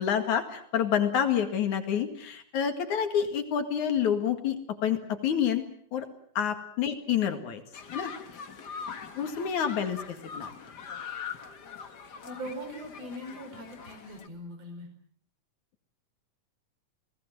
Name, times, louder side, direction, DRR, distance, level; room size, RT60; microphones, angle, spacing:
voice 1, 0.0-5.6 5.9-6.1 6.3-7.6 7.9-8.1 9.2-10.5, left 8 dB, 65° left, 8 dB, 3.3 m, -28 dB
sound 1, 7.7-14.3, left 6 dB, 40° left, 1.6 m, -42 dB
voice 2, 12.2-14.9, equal, 50° right, 6 dB, 5.9 m, -41 dB
29.5 x 18.5 x 7.7 m, 0.63 s
omnidirectional pair, 3.8 m